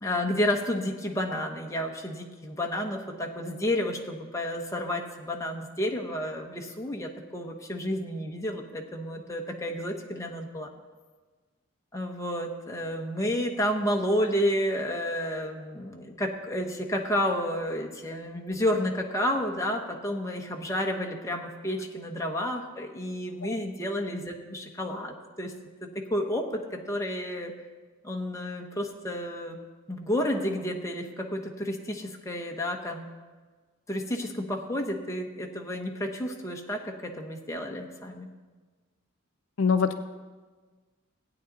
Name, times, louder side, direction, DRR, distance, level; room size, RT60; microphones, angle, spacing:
voice 1, 0.0-10.7 11.9-25.5 25.8-27.5 28.0-29.6 29.9-33.1 33.9-38.3, left 1 dB, 15° left, 1 dB, 1.0 m, -31 dB
voice 2, 39.6-40.0, left 5 dB, 65° left, 8 dB, 0.5 m, -24 dB
16.0 x 9.2 x 4.0 m, 1.4 s
head